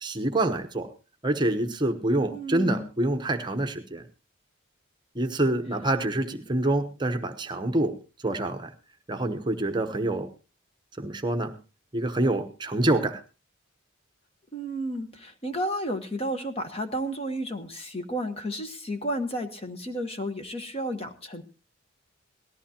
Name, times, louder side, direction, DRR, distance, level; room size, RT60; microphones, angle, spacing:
voice 1, 0.0-0.9 1.2-4.0 5.1-8.0 8.2-8.7 9.1-10.3 11.0-11.5 11.9-13.2, right 1 dB, 20° right, 6 dB, 0.9 m, -26 dB
voice 2, 2.3-2.9 14.5-21.4, equal, 30° left, 7 dB, 1.2 m, -32 dB
18.5 x 14.0 x 2.9 m, 0.30 s
head